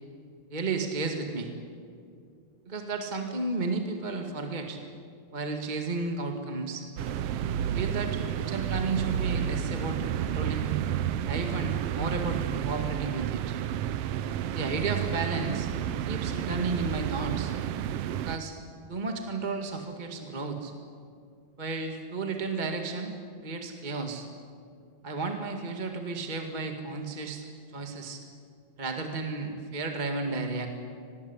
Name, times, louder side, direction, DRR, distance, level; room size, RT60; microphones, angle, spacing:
voice 1, 0.5-1.5 2.6-4.8 5.3-6.9 7.6-10.7 11.2-13.6 14.5-15.7 16.0-17.5 18.2-18.6 18.9-20.7 21.6-23.1 23.4-24.3 25.0-28.2 28.8-30.7, right 3 dB, 20° right, 4 dB, 1.6 m, -33 dB
sound 1, 7.0-18.4, right 10 dB, 85° right, 1.3 m, -31 dB
24.5 x 20.0 x 9.8 m, 2.5 s
omnidirectional pair, 3.7 m